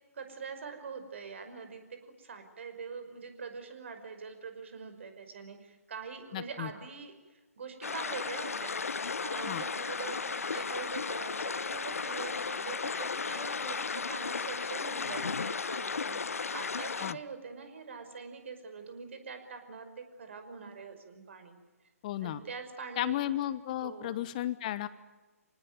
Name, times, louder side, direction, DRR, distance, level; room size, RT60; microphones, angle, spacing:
voice 1, 0.1-8.7 9.2-21.6 22.2-23.2 23.7-24.2, right 5 dB, 50° right, 8 dB, 5.5 m, -44 dB
voice 2, 6.3-6.7 9.5-9.6 17.0-17.2 22.0-22.4 23.0-24.9, left 13 dB, 30° left, 15 dB, 1.1 m, -33 dB
sound 1, 7.8-17.1, left 5 dB, 65° left, 0.8 m, -35 dB
27.0 x 19.0 x 9.6 m, 1.2 s
figure-of-eight pair, 140°, 8 cm